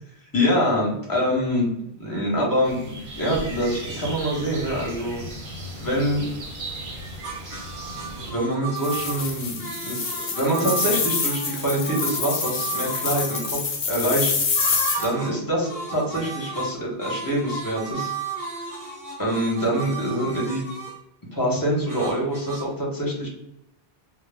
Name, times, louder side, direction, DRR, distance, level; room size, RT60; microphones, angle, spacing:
voice 1, 0.3-1.7 2.0-5.2 5.8-6.2 8.3-10.0 10.3-13.6 13.9-14.5 15.0-18.1 19.2-20.6 21.3-23.3, equal, 20° left, -3 dB, 0.7 m, -25 dB
sound 1, 2.6-8.3, right 1 dB, 55° right, 0.7 m, -36 dB
sound 2, 7.2-13.5 14.5-15.4 15.6-21.0 21.9-22.6, right 4 dB, 25° right, 0.4 m, -34 dB
sound 3, 8.8-15.1, left 4 dB, 55° left, 0.5 m, -27 dB
2.1 x 2.0 x 3.2 m, 0.82 s
omnidirectional pair, 1.1 m